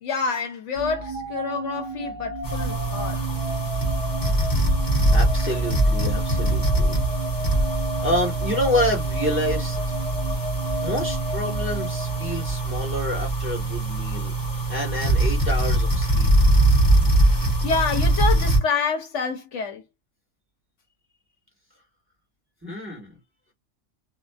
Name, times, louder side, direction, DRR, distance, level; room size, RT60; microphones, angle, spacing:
voice 1, 0.0-3.3 17.3-19.8, left 5 dB, 70° left, 0.9 m, -28 dB
sound 1, 0.8-12.9, equal, 55° right, 1.1 m, -34 dB
sound 2, 2.4-18.6, right 1 dB, 20° left, 0.7 m, -22 dB
voice 2, 4.8-7.0 8.0-9.8 10.8-14.3 14.7-16.3 22.6-23.1, left 1 dB, 10° right, 1.1 m, -28 dB
2.4 x 2.4 x 2.3 m
omnidirectional pair, 1.4 m